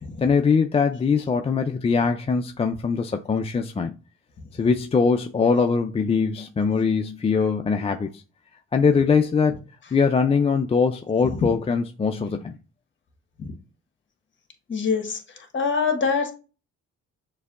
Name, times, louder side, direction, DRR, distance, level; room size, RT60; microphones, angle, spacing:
voice 1, 0.2-3.9 4.5-8.2 8.7-9.6 9.9-12.6, left 5 dB, 20° left, 0.3 m, -22 dB
voice 2, 14.7-15.2 15.5-16.3, left 5 dB, 40° left, 1.4 m, -23 dB
6.6 x 2.7 x 2.4 m
cardioid pair, 90°, 30 cm